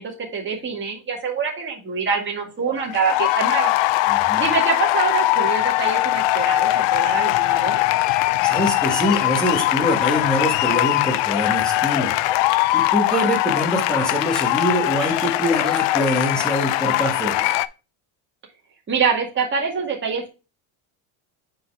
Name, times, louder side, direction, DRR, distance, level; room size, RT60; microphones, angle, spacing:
voice 1, 0.0-3.7 4.4-7.8 18.9-20.3, right 6 dB, 20° right, -1 dB, 1.9 m, -25 dB
sound 1, 2.7-17.7, left 17 dB, 60° left, 0.5 m, -21 dB
voice 2, 4.1-4.4 8.1-12.1 12.7-17.5, equal, ahead, -1 dB, 1.4 m, -24 dB
4.7 x 4.3 x 5.7 m, 0.30 s
cardioid pair, 160°, 50 cm